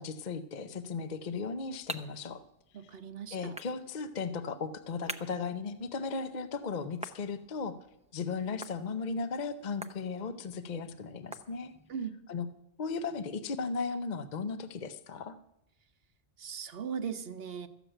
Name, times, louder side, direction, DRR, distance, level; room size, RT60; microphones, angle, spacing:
voice 1, 0.0-2.4 3.3-7.8 8.1-11.7 12.3-12.5 12.8-15.4, left 4 dB, 45° left, 10 dB, 0.8 m, -36 dB
sound 1, 1.2-12.0, right 2 dB, 10° right, 0.5 m, -49 dB
voice 2, 2.7-3.5 11.9-12.2 16.4-17.7, right 7 dB, 60° right, 7 dB, 1.1 m, -38 dB
13.5 x 7.1 x 9.0 m, 0.81 s
omnidirectional pair, 1.2 m